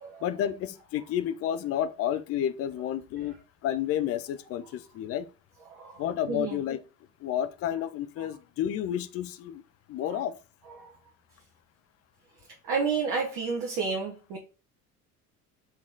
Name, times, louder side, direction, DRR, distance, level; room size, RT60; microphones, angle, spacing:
voice 1, 0.2-3.4 3.6-5.3 6.0-6.8 7.2-9.6 9.9-10.4, left 10 dB, 35° left, 0.5 m, -30 dB
voice 2, 5.7-6.6 10.1-10.2 10.8-10.9 12.4-14.4, right 5 dB, 50° right, 1.1 m, -31 dB
4.3 x 3.0 x 3.8 m
figure-of-eight pair, 60°, 45 cm